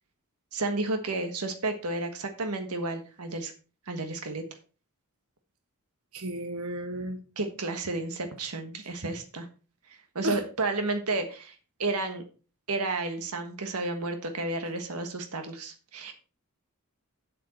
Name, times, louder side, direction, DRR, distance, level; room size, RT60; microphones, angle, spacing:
voice 1, 0.5-3.5 3.9-4.4 7.4-9.5 10.1-12.2 12.7-16.2, right 2 dB, 85° right, 6 dB, 1.4 m, -32 dB
voice 2, 6.1-7.2 10.2-10.4, right 1 dB, 70° right, 6 dB, 1.4 m, -33 dB
7.8 x 7.5 x 4.3 m, 0.34 s
head